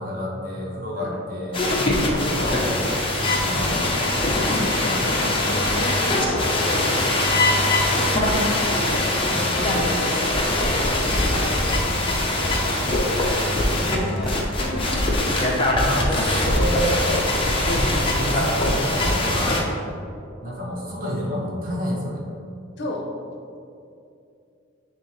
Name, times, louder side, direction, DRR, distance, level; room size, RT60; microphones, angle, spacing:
voice 1, 0.0-1.6 2.3-2.9 3.2-4.0 15.7-17.3 17.7-19.6 20.4-22.2, equal, 45° right, -3 dB, 1.3 m, -29 dB
sound 1, 1.5-19.6, left 1 dB, 30° left, 0.8 m, -22 dB
sound 2, 2.0-15.7, equal, ahead, 0.6 m, -41 dB
voice 2, 4.3-6.9 9.2-11.5 22.8-23.1, left 1 dB, 60° left, 0 dB, 0.9 m, -34 dB
9.6 x 3.4 x 3.2 m, 2.6 s
head